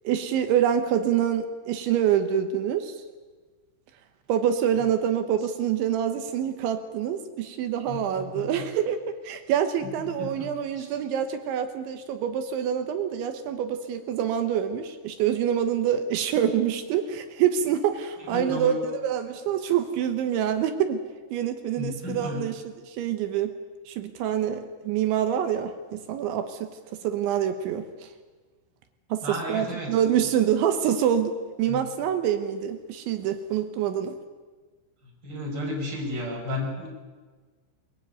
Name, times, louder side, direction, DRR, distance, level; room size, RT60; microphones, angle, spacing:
voice 1, 0.0-2.9 4.3-9.0 9.2-21.0 21.3-23.6 23.9-26.7 27.0-28.1 29.1-34.2, right 9 dB, 70° right, 8 dB, 3.3 m, -26 dB
voice 2, 7.9-8.6 9.8-9.9 10.2-10.9 18.3-18.8 21.8-22.4 29.2-30.0 31.7-31.8 35.0-36.9, left 1 dB, 20° right, 1 dB, 5.7 m, -33 dB
21.5 x 21.5 x 9.3 m, 1.4 s
omnidirectional pair, 5.9 m